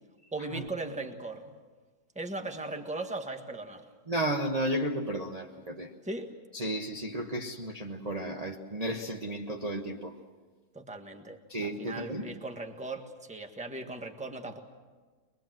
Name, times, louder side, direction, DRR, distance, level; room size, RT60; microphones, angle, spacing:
voice 1, 0.3-1.5 2.1-3.8 6.0-6.3 10.7-14.6, right 2 dB, 5° right, 5 dB, 1.3 m, -38 dB
voice 2, 4.1-5.9 6.5-10.1 11.5-12.3, right 1 dB, 25° right, 1 dB, 1.1 m, -33 dB
23.5 x 22.0 x 7.7 m, 1.4 s
omnidirectional pair, 2.0 m